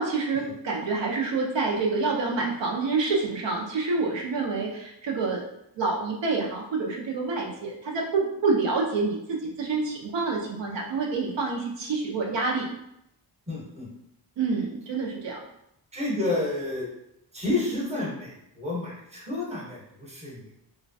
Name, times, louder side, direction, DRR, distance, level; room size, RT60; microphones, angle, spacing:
voice 1, 0.0-5.4 5.8-12.7 14.4-15.4, right 4 dB, 80° right, -1 dB, 0.6 m, -27 dB
voice 2, 13.5-13.9 15.9-16.9 17.3-20.5, left 2 dB, 15° right, -4 dB, 0.8 m, -30 dB
3.1 x 2.2 x 2.6 m, 0.80 s
wide cardioid pair, 135°, 44 cm